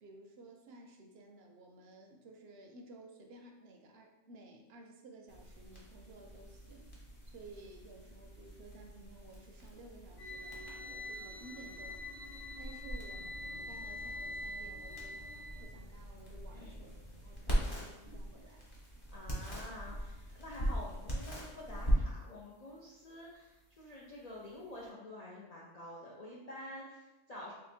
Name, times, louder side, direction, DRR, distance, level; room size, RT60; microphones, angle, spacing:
voice 1, 0.0-12.0 12.6-15.2 15.6-18.7, right 2 dB, 65° right, 2 dB, 0.7 m, -55 dB
sound 1, 5.3-24.9, equal, 25° left, 0.9 m, -41 dB
sound 2, 10.2-15.7, left 1 dB, 75° left, 1.1 m, -45 dB
voice 2, 19.1-27.5, left 1 dB, 50° left, -5 dB, 0.5 m, -48 dB
3.1 x 2.7 x 4.2 m, 1.1 s
omnidirectional pair, 1.3 m